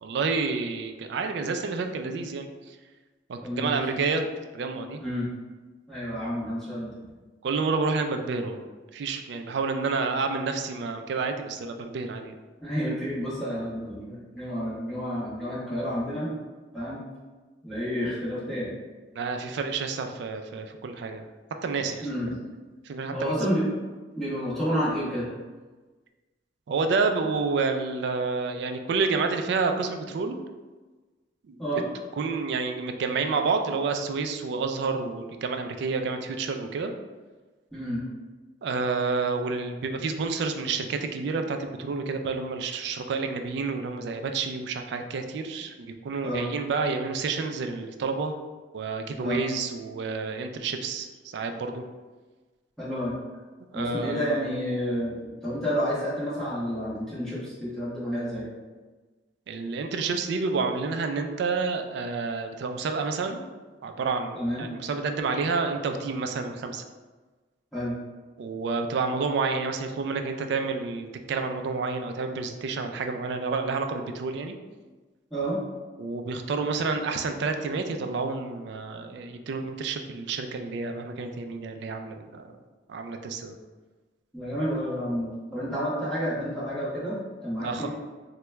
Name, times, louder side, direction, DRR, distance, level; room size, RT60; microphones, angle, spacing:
voice 1, 0.0-2.8 3.3-4.2 4.5-5.0 7.4-8.6 8.9-12.4 19.2-21.2 21.6-22.1 22.9-23.3 26.7-30.4 31.5-31.6 32.2-36.9 38.6-48.4 48.7-51.8 53.7-54.5 59.5-63.4 63.8-66.8 68.4-74.6 76.0-82.5 82.9-83.5 87.6-87.9, right 4 dB, 65° right, 6 dB, 0.3 m, -29 dB
voice 2, 3.4-4.0 5.0-5.3 5.9-6.9 12.6-16.3 16.7-17.0 17.6-18.8 22.0-22.3 23.1-23.7 24.2-25.3 31.6-31.8 37.7-38.0 46.2-46.5 49.2-49.4 52.8-53.1 53.7-58.5 64.3-64.6 67.7-67.9 75.3-75.6 84.3-87.9, equal, ahead, -11 dB, 1.1 m, -30 dB
3.0 x 2.2 x 3.3 m, 1.3 s
head